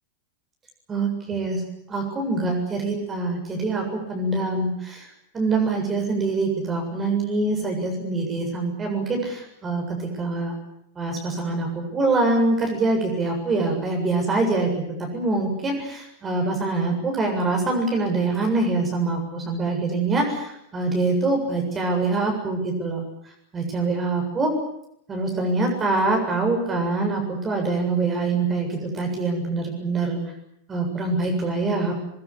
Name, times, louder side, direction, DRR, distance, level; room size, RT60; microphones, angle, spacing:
voice 1, 0.9-1.6 1.9-5.1 5.3-10.5 11.0-23.0 23.5-24.5 25.1-30.2 30.7-32.0, right 3 dB, 20° right, 2 dB, 7.6 m, -24 dB
23.0 x 22.5 x 9.9 m, 0.78 s
figure-of-eight pair, 90°, 0 cm